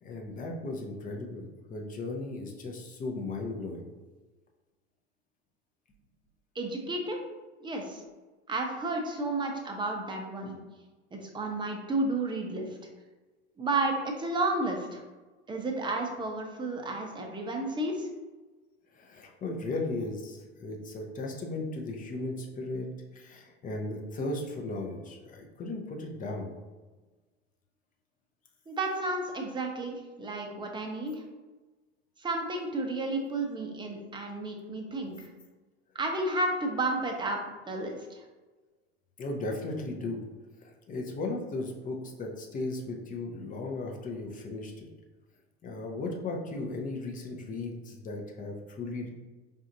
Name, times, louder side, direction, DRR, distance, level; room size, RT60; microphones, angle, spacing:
voice 1, 0.0-3.9 18.9-22.9 23.1-26.5 39.2-40.2 40.6-44.9 45.6-49.1, left 2 dB, 25° left, 1 dB, 0.7 m, -36 dB
voice 2, 6.5-7.2 7.6-8.0 8.5-10.5 11.1-12.7 13.6-15.0 15.5-18.1 28.7-31.2 32.2-35.3 35.9-37.4 37.6-38.2, right 2 dB, 15° right, 2 dB, 0.7 m, -32 dB
4.9 x 2.6 x 2.5 m, 1.2 s
figure-of-eight pair, 75°, 34 cm